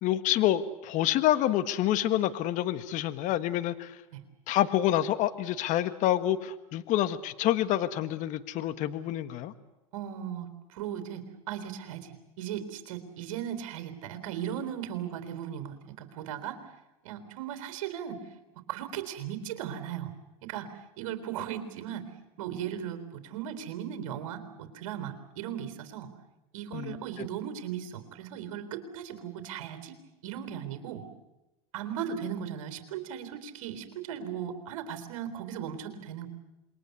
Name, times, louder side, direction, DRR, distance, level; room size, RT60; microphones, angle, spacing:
voice 1, 0.0-4.0 4.5-9.5 26.7-27.3, left 13 dB, 50° left, 12 dB, 1.4 m, -27 dB
voice 2, 9.9-16.6 17.0-18.2 18.7-20.1 20.4-20.7 21.0-22.0 22.4-26.1 26.5-30.0 30.2-31.0 31.7-36.3, right 9 dB, 70° right, 9 dB, 3.7 m, -37 dB
27.5 x 22.5 x 8.2 m, 0.97 s
hypercardioid pair, 110°, 17 cm